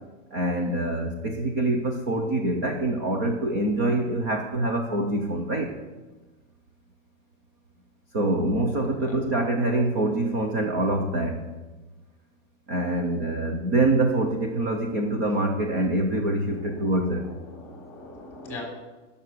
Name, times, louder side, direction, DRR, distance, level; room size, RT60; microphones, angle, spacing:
voice 1, 0.3-5.7 8.1-11.4 12.7-17.3, right 2 dB, 15° right, 4 dB, 0.3 m, -25 dB
voice 2, 16.5-18.6, left 2 dB, 5° left, -1 dB, 3.4 m, -42 dB
12.5 x 6.6 x 8.1 m, 1.3 s
hypercardioid pair, 160°, 38 cm